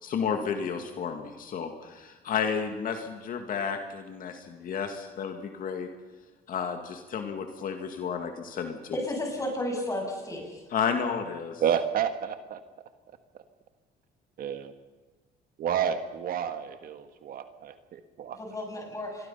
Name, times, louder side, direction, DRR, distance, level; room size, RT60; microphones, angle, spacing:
voice 1, 0.0-5.9 6.5-9.0 10.7-11.6, left 6 dB, 55° left, 5 dB, 2.1 m, -32 dB
voice 2, 8.9-10.6 18.3-19.3, left 1 dB, 20° left, 1 dB, 7.6 m, -33 dB
voice 3, 11.6-12.6 14.4-14.7 15.6-18.4, right 8 dB, 60° right, 9 dB, 1.6 m, -30 dB
28.0 x 22.5 x 5.7 m, 1.2 s
cardioid pair, 110°, 17 cm